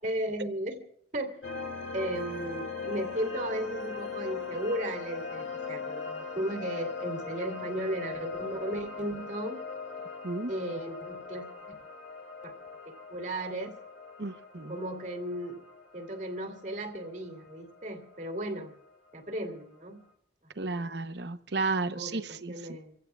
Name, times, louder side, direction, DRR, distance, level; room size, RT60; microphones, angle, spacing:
voice 1, 0.0-0.8 1.1-9.6 10.5-11.5 12.4-12.5 12.9-13.8 14.7-15.6 15.9-18.7 19.1-20.0 20.6-20.9 21.9-23.0, right 1 dB, 40° right, 2.4 m, -35 dB
sound 1, 1.4-18.4, left 4 dB, 80° left, 3.0 m, -40 dB
voice 2, 14.2-14.8 20.6-22.8, right 3 dB, 60° right, 0.8 m, -33 dB
27.5 x 16.0 x 2.4 m
head